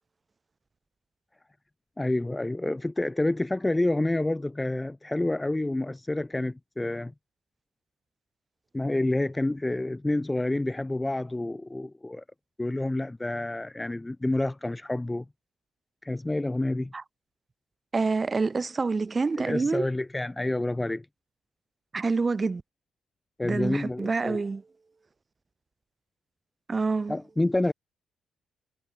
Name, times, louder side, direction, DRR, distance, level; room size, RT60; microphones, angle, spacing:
voice 1, 2.0-7.1 8.7-12.2 12.6-15.2 16.0-16.9 19.4-21.1 23.4-24.4 27.1-27.7, left 2 dB, 15° left, 0.6 m, -28 dB
voice 2, 17.9-19.9 21.9-22.6 23.4-24.6 26.7-27.1, right 4 dB, 30° right, 2.1 m, -27 dB
cardioid pair, 80°, 0 cm